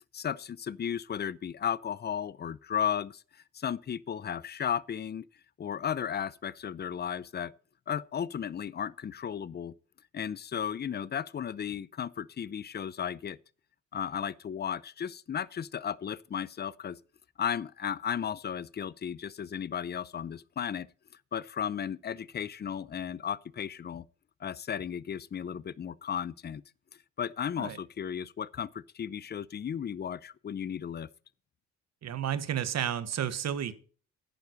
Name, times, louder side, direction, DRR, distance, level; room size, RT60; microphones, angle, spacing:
voice 1, 0.1-5.2 5.6-7.5 7.9-9.7 10.1-13.4 13.9-17.0 17.4-20.9 21.3-24.0 24.4-26.6 27.2-31.1, left 8 dB, 35° left, 0.6 m, -34 dB
voice 2, 32.0-33.7, right 9 dB, 60° right, 1.3 m, -31 dB
11.0 x 9.3 x 4.1 m
cardioid pair, 90°, 30 cm